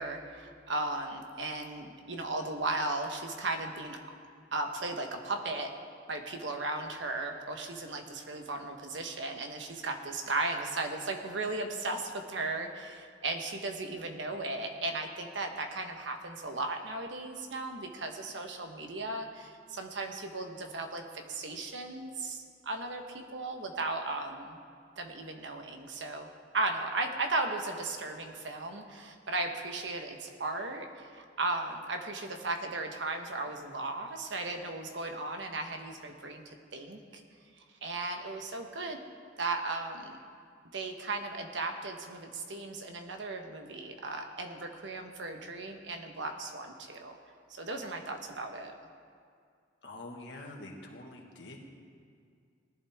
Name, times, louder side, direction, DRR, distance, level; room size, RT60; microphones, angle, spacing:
voice 1, 0.0-4.0 4.5-5.7 6.1-24.6 25.0-26.3 26.5-37.2 37.8-39.0 39.4-40.2 40.7-47.2 47.5-48.7, right 2 dB, 80° right, 4 dB, 1.3 m, -36 dB
voice 2, 49.8-51.7, left 2 dB, 70° left, 1 dB, 1.8 m, -45 dB
19.0 x 11.5 x 3.6 m, 2.3 s
head